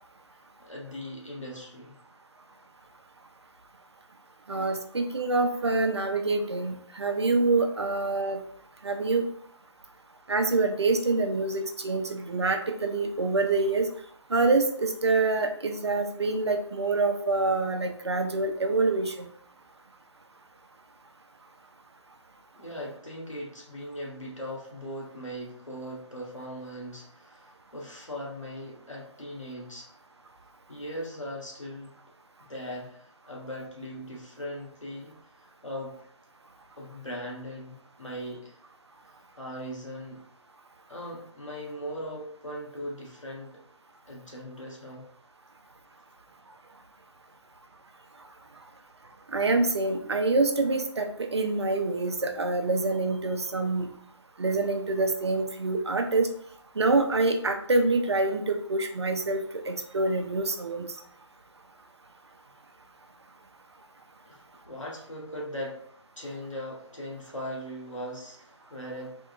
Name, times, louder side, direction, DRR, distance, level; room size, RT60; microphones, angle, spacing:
voice 1, 0.3-1.9 22.6-29.9 30.7-31.9 32.5-36.0 36.8-38.6 39.4-40.2 40.9-43.6 44.0-45.1 64.3-65.8 66.1-69.2, equal, 85° left, -3 dB, 1.1 m, -39 dB
voice 2, 4.5-8.4 8.8-9.3 10.3-13.9 14.3-19.3 49.3-53.9 54.4-56.3 56.8-60.9, right 3 dB, 60° right, 5 dB, 0.5 m, -26 dB
3.6 x 2.2 x 2.3 m, 0.62 s
figure-of-eight pair, 150°, 16 cm